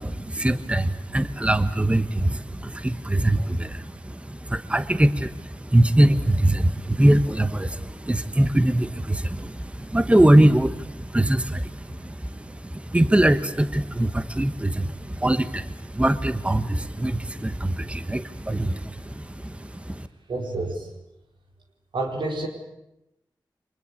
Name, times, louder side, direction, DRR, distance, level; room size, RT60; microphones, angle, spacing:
voice 1, 0.0-20.1, right 1 dB, 15° right, 11 dB, 1.2 m, -22 dB
voice 2, 20.3-20.9 21.9-22.5, right 2 dB, 80° right, 1 dB, 4.6 m, -28 dB
24.5 x 20.0 x 8.5 m, 0.90 s
cardioid pair, 55°, 8 cm